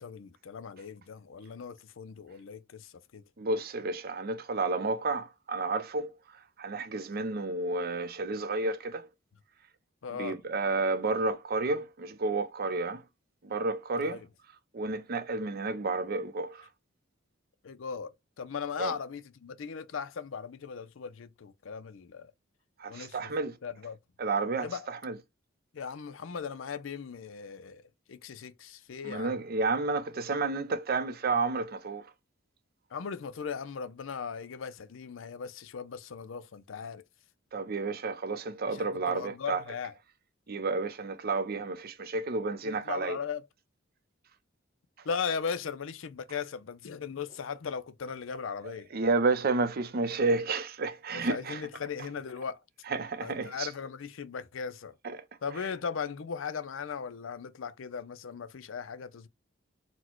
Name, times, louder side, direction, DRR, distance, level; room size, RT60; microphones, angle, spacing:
voice 1, 0.0-3.2 10.0-10.4 14.0-14.3 17.6-22.3 22.9-23.3 23.6-24.0 24.6-24.9 25.7-27.8 28.1-29.4 32.9-37.0 38.7-39.9 42.6-43.5 45.0-48.9 51.1-52.6 53.2-54.9 55.4-59.3, left 6 dB, 75° left, 0.5 m, -38 dB
voice 2, 3.4-6.1 6.6-9.1 10.1-13.0 13.4-14.2 14.7-16.7 18.8-18.9 22.8-23.6 24.2-25.2 29.0-32.1 37.5-39.6 40.5-43.2 48.9-51.6 52.9-53.7 55.0-55.2, right 3 dB, 50° right, 0.6 m, -31 dB
4.3 x 2.2 x 4.4 m
head